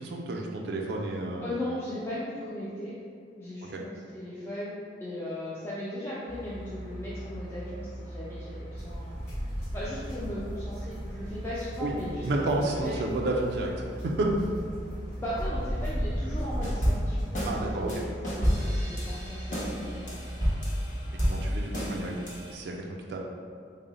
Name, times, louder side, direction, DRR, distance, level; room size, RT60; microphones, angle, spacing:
voice 1, 0.0-1.5 3.7-3.8 11.8-11.9 12.2-14.3 17.4-17.9 21.2-23.2, right 2 dB, 65° right, -1 dB, 0.3 m, -31 dB
voice 2, 1.4-3.0 3.4-4.8 5.0-9.2 9.7-13.2 15.2-17.3 17.6-20.4, left 1 dB, 15° left, -9 dB, 0.4 m, -37 dB
sound 1, 6.3-21.5, right 1 dB, 80° left, 1.2 m, -40 dB
sound 2, 8.7-17.9, equal, 60° left, 1.3 m, -37 dB
sound 3, 16.6-17.5 17.9-22.5, equal, 45° left, 0.8 m, -30 dB
3.7 x 2.0 x 3.8 m, 2.3 s
head